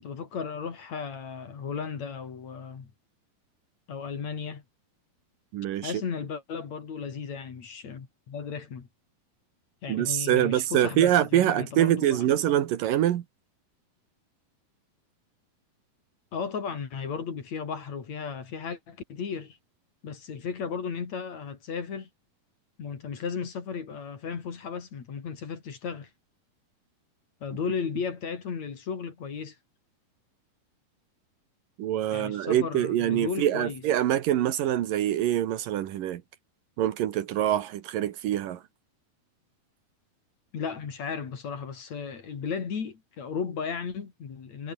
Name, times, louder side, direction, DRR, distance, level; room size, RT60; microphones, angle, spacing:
voice 1, 0.0-2.9 3.9-4.6 5.8-8.9 9.8-12.4 16.3-19.6 20.0-22.1 22.8-26.1 27.4-29.6 32.1-33.8 40.5-44.7, left 6 dB, 50° left, 4.0 m, -35 dB
voice 2, 5.5-5.9 9.9-13.2 31.8-36.2 36.8-38.6, right 12 dB, 70° right, 2.8 m, -25 dB
omnidirectional pair, 4.2 m